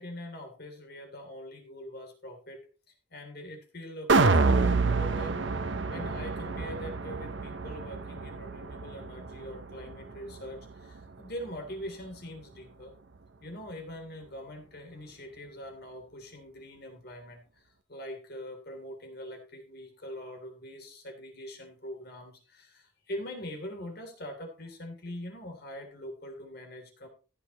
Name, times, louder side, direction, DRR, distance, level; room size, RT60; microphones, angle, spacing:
voice 1, 0.0-5.4 5.9-12.9 13.4-27.1, equal, 55° left, 3 dB, 3.3 m, -43 dB
sound 1, 4.1-10.3 10.7-10.8, right 3 dB, 70° right, 0.8 m, -27 dB
15.0 x 8.7 x 3.1 m, 0.35 s
head